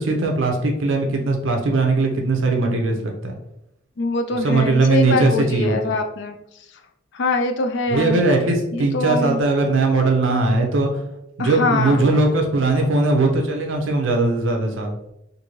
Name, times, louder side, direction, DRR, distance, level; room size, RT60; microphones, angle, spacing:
voice 1, 0.0-3.3 4.4-5.8 7.9-10.9 11.4-14.9, right 3 dB, 75° right, 2 dB, 0.6 m, -19 dB
voice 2, 4.0-6.4 7.1-8.2 8.7-9.4 11.4-12.1, left 3 dB, 60° left, 5 dB, 0.4 m, -23 dB
2.6 x 2.6 x 3.0 m, 0.82 s
head